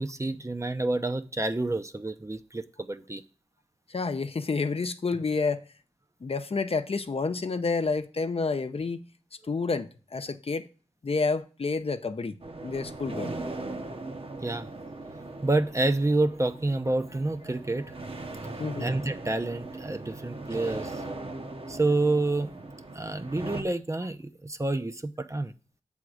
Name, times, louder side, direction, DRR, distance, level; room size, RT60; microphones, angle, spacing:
voice 1, 0.0-3.2 14.4-14.7 15.4-17.9 18.8-21.0 21.7-22.6 22.9-25.5, right 2 dB, 25° right, 0.6 m, -28 dB
voice 2, 3.9-5.6 6.2-9.0 9.5-10.7 11.0-12.4 12.6-13.3 18.6-18.9, left 4 dB, 55° left, 0.6 m, -29 dB
sound 1, 12.4-23.6, right 2 dB, 55° right, 1.0 m, -39 dB
7.6 x 3.6 x 6.2 m
cardioid pair, 45°, 12 cm